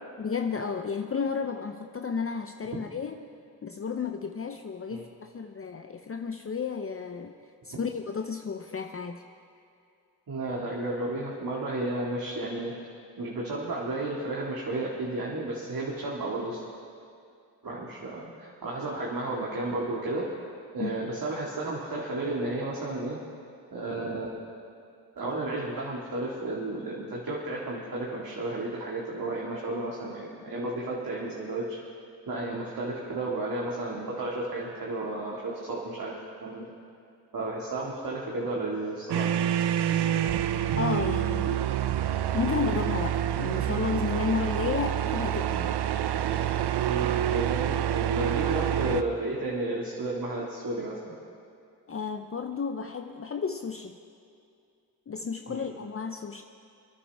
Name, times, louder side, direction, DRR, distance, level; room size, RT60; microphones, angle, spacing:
voice 1, 0.2-3.2 3.6-7.3 7.6-9.2 20.8-21.0 40.8-41.7 42.3-45.8 51.9-54.0 55.1-56.4, left 5 dB, 35° left, 5 dB, 0.6 m, -32 dB
voice 2, 10.3-12.7 13.2-16.6 17.6-20.3 20.7-23.2 23.7-24.3 25.2-31.8 32.3-36.7 37.3-39.5 46.8-51.1 55.5-55.7, right 2 dB, 55° right, -4 dB, 2.1 m, -33 dB
sound 1, 39.1-49.0, right 10 dB, 75° right, 0.7 m, -27 dB
29.0 x 9.9 x 3.5 m, 2.4 s
cardioid pair, 60°, 41 cm